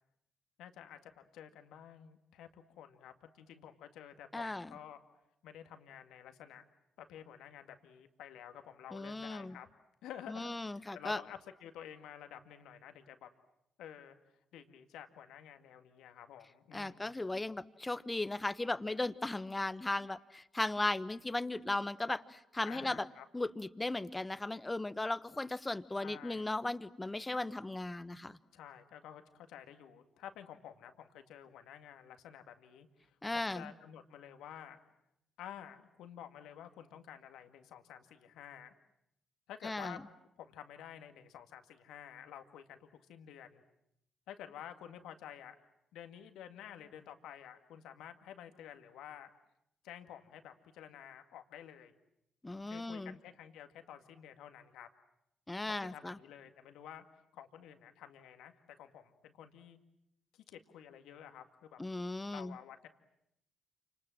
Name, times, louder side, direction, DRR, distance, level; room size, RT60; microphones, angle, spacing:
voice 1, 0.6-5.0 5.4-6.6 7.0-9.7 10.0-13.3 13.8-14.2 14.5-17.2 22.6-23.2 26.0-26.4 28.5-34.8 35.4-38.7 39.5-40.0 40.4-43.6 44.3-45.5 45.9-49.3 49.8-51.9 52.7-54.9 55.7-59.8 60.3-61.8 62.3-62.9, left 10 dB, 70° left, 7 dB, 2.0 m, -51 dB
voice 2, 4.3-4.7 8.9-9.6 10.3-11.2 16.7-23.0 23.3-28.4 33.2-33.7 39.6-40.0 52.4-53.1 55.5-56.2 61.8-62.6, left 2 dB, 20° left, 15 dB, 1.3 m, -37 dB
29.0 x 27.0 x 7.6 m, 0.78 s
hypercardioid pair, 45°, 0 cm